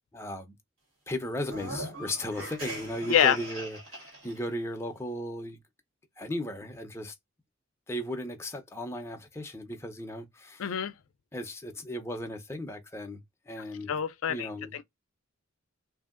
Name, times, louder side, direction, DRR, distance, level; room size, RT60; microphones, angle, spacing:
voice 1, 0.1-0.6 1.1-5.6 6.2-7.1 7.9-10.6 11.3-13.9 14.3-14.8, left 1 dB, 15° left, 0.6 m, -36 dB
sound 1, 1.4-4.4, right 1 dB, 75° right, 1.7 m, -40 dB
voice 2, 10.6-10.9 13.9-14.8, left 9 dB, 85° left, 0.4 m, -26 dB
2.7 x 2.6 x 2.4 m
head